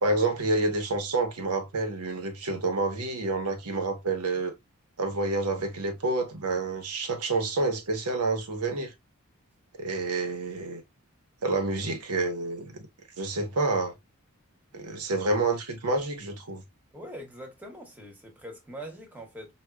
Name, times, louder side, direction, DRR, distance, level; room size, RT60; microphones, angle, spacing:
voice 1, 0.0-4.5 5.0-8.9 9.8-10.8 11.4-12.9 13.2-13.9 14.7-16.6, right 3 dB, 90° right, 1.0 m, -28 dB
voice 2, 16.9-19.5, equal, 5° right, 1.0 m, -43 dB
4.8 x 2.4 x 2.2 m
head